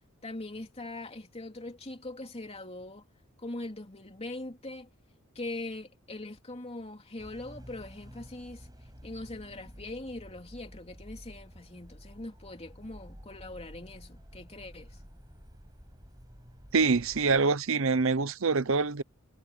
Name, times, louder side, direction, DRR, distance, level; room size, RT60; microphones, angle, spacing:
voice 1, 0.2-3.1 3.4-4.9 5.3-8.7 9.0-15.0, left 2 dB, 30° left, 3.1 m, -41 dB
sound 1, 7.2-17.4, equal, 20° right, 7.9 m, -51 dB
voice 2, 16.7-19.0, right 4 dB, 65° right, 0.8 m, -25 dB
head